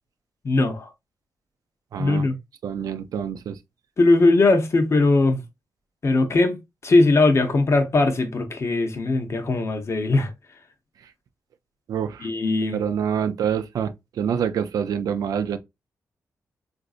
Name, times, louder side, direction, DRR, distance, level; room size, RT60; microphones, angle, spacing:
voice 1, 0.4-0.9 2.0-2.4 4.0-5.4 6.0-10.3 12.2-12.8, left 2 dB, 50° left, 0.8 m, -20 dB
voice 2, 1.9-2.2 2.6-3.6 11.9-12.3 12.7-15.6, right 8 dB, 80° right, 0.4 m, -26 dB
3.8 x 2.6 x 2.4 m
cardioid pair, 70°, 6 cm